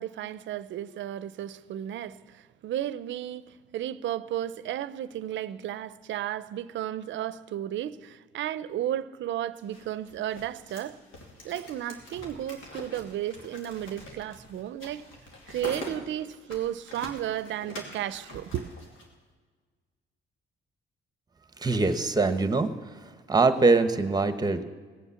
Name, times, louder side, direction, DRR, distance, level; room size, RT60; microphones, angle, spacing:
voice 1, 0.0-3.4 3.7-11.0 11.4-15.0 15.5-18.7, right 11 dB, 70° right, 0.6 m, -33 dB
sound 1, 9.6-19.1, left 1 dB, 85° left, 2.7 m, -44 dB
voice 2, 21.6-22.9 23.3-24.6, right 3 dB, 20° right, 1.0 m, -23 dB
18.5 x 7.3 x 7.0 m
cardioid pair, 90°, 20 cm